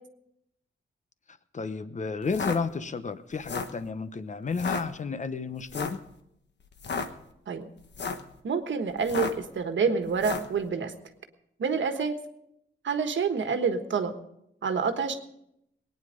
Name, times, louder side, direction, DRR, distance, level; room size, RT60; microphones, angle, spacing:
voice 1, 1.5-6.0, left 4 dB, 35° left, 12 dB, 0.9 m, -32 dB
sound 1, 2.2-2.6 3.3-3.8 4.5-4.8 5.7-6.0 6.7-7.1 7.8-8.3 9.0-9.5 10.2-10.5, left 4 dB, 60° left, 1.2 m, -32 dB
voice 2, 8.4-10.9 11.6-12.1 12.8-14.1 14.6-15.1, right 5 dB, 70° right, 7 dB, 1.4 m, -27 dB
20.5 x 9.8 x 5.2 m, 0.79 s
wide cardioid pair, 95°, 20 cm